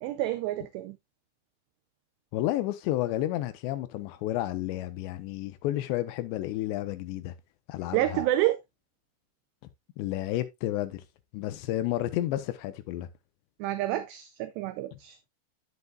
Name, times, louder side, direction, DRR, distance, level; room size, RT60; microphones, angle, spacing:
voice 1, 0.0-1.0 7.9-8.6 13.6-15.2, right 14 dB, 85° right, 2.5 m, -28 dB
voice 2, 2.3-7.4 7.7-8.2 10.0-11.0 11.3-13.1, left 14 dB, 80° left, 2.7 m, -31 dB
9.5 x 8.0 x 2.3 m
omnidirectional pair, 5.5 m